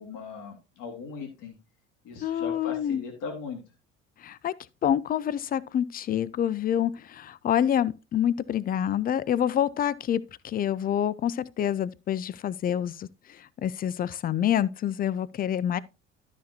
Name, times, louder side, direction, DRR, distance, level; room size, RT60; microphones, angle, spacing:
voice 1, 0.0-1.5 2.0-3.6, left 5 dB, 55° left, 2.6 m, -39 dB
voice 2, 2.2-3.0 4.2-4.5 4.8-15.8, left 10 dB, 25° left, 0.4 m, -27 dB
12.5 x 6.2 x 2.7 m
figure-of-eight pair, 60°, 38 cm